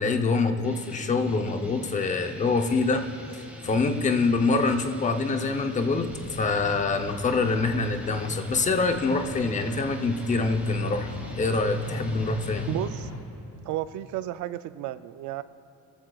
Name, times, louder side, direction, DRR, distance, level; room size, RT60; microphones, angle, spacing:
voice 1, 0.0-3.0 3.3-11.1 11.4-12.7, left 3 dB, 20° left, 6 dB, 0.7 m, -25 dB
sound 1, 0.6-13.2, right 1 dB, 5° right, 1.6 m, -44 dB
sound 2, 4.4-9.6, left 2 dB, 40° left, 2.4 m, -49 dB
sound 3, 6.6-13.2, left 2 dB, 85° left, 3.0 m, -39 dB
voice 2, 12.7-13.1 13.7-15.4, right 13 dB, 60° right, 13 dB, 0.5 m, -32 dB
24.0 x 14.0 x 2.4 m, 2.9 s
cardioid pair, 160°, 34 cm